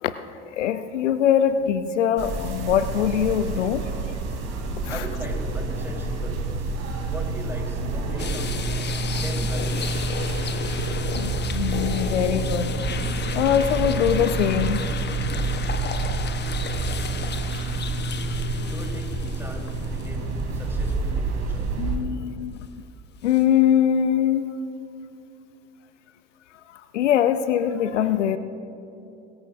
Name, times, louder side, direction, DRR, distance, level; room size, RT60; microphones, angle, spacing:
voice 1, 0.5-3.8 4.8-5.0 11.1-12.8 13.3-14.8 21.8-22.7 23.2-24.5 26.9-28.4, left 9 dB, 85° left, 12 dB, 0.6 m, -22 dB
sound 1, 2.2-22.0, right 3 dB, 50° right, 3.0 m, -28 dB
voice 2, 4.9-6.7 7.1-8.7 9.1-10.2 18.6-21.7, equal, 5° right, 0 dB, 3.8 m, -39 dB
sound 2, 8.2-20.4 20.8-20.9 23.3-23.4, left 6 dB, 30° left, 1.1 m, -34 dB
23.0 x 14.0 x 2.6 m, 2.8 s
hypercardioid pair, 70°, 35 cm